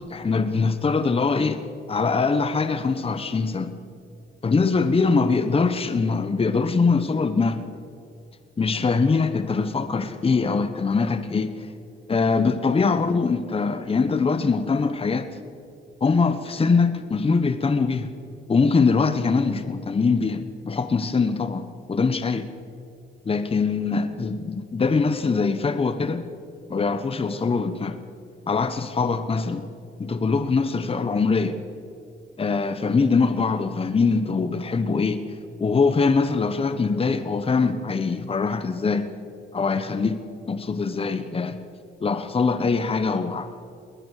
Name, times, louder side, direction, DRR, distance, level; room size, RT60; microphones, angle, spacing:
voice 1, 0.0-1.6 1.9-3.7 4.4-7.6 8.6-11.5 12.1-15.3 16.0-18.1 18.5-22.5 23.2-26.3 26.7-28.0 28.5-29.6 30.0-31.6 32.4-35.2 35.6-39.1 39.5-40.2 40.5-41.6 42.0-43.6, left 4 dB, 30° left, 10 dB, 1.2 m, -23 dB
20.5 x 20.0 x 6.6 m, 2.4 s
cardioid pair, 90°, 20 cm